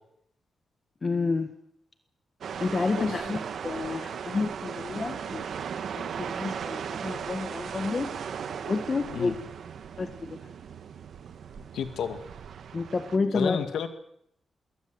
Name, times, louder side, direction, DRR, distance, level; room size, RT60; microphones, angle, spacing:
voice 1, 1.0-1.5 2.6-5.5 5.9-8.1 8.7-9.4 10.0-10.4 12.7-13.6, left 4 dB, 30° left, 8 dB, 1.4 m, -29 dB
sound 1, 2.4-13.2, right 7 dB, 65° right, 1.4 m, -37 dB
voice 2, 11.7-12.2 13.3-13.9, left 8 dB, 85° left, 8 dB, 2.2 m, -31 dB
21.5 x 19.0 x 7.8 m, 0.72 s
wide cardioid pair, 150°, 0 cm